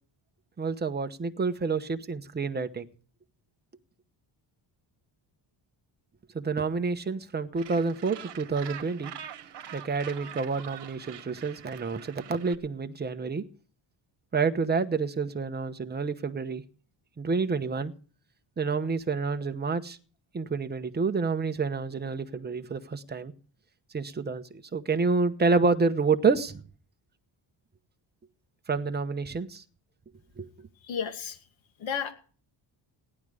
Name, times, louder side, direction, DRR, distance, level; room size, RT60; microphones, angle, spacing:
voice 1, 0.6-2.9 6.3-9.1 9.7-13.4 14.3-16.6 17.2-17.9 18.6-20.0 20.3-23.3 23.9-24.4 24.7-26.6 28.7-29.6 30.4-30.5, right 4 dB, 20° right, 8 dB, 0.9 m, -28 dB
Gull seagull, 7.6-12.6, right 9 dB, 60° right, 1.5 m, -44 dB
voice 2, 30.8-31.4 31.8-32.1, left 7 dB, 75° left, 7 dB, 2.6 m, -32 dB
17.5 x 11.5 x 5.0 m, 0.40 s
wide cardioid pair, 175°, 46 cm